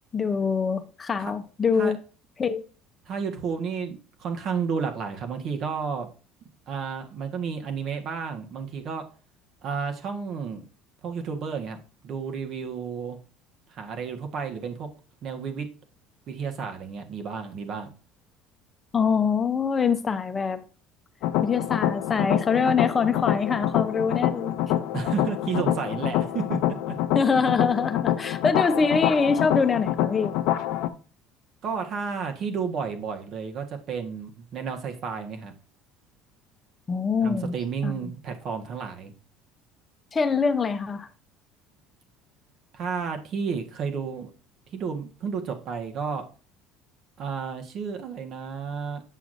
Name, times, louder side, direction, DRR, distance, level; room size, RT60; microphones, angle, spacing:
voice 1, 0.1-2.0 2.4-2.6 18.9-20.6 21.4-24.6 27.1-30.4 36.9-37.6 37.8-37.9 40.1-41.1, left 5 dB, 30° left, 0.7 m, -24 dB
voice 2, 3.0-6.1 6.7-9.0 9.6-10.6 11.0-11.8 12.0-13.2 13.7-14.9 15.2-15.7 16.3-17.9 24.9-27.0 31.6-35.5 37.2-39.1 42.7-44.3 44.7-46.2 47.2-49.0, right 6 dB, 55° right, 1.4 m, -32 dB
sound 1, 21.2-30.9, left 12 dB, 70° left, 0.6 m, -26 dB
8.1 x 6.1 x 2.6 m
supercardioid pair, 100°, 0 cm